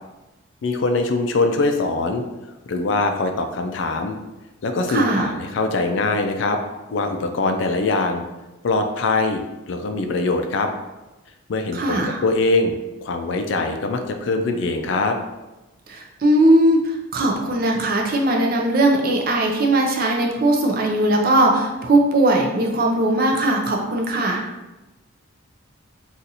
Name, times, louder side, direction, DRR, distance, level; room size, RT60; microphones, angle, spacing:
voice 1, 0.6-2.2 2.7-4.2 4.6-6.6 6.9-8.2 8.6-9.4 9.7-10.7 11.5-12.8 13.0-15.2, left 3 dB, 60° left, 5 dB, 0.3 m, -22 dB
voice 2, 4.9-5.3 11.7-12.2 15.9-24.4, right 1 dB, 45° right, 1 dB, 0.5 m, -19 dB
2.7 x 2.4 x 4.0 m, 1.1 s
head